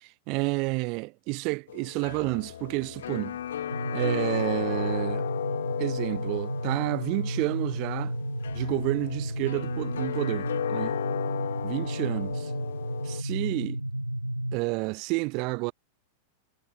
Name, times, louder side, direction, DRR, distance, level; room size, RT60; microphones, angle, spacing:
voice 1, 0.3-3.4 3.9-5.3 5.8-8.1 8.5-11.0 11.6-12.5 13.0-13.8 14.5-15.7, right 29 dB, 45° right, 0.7 m, -30 dB
sound 1, 1.7-13.2, left 10 dB, 65° left, 1.7 m, -35 dB
sound 2, 3.7-14.6, right 1 dB, 90° right, 0.4 m, -32 dB
figure-of-eight pair, 90°, 0 cm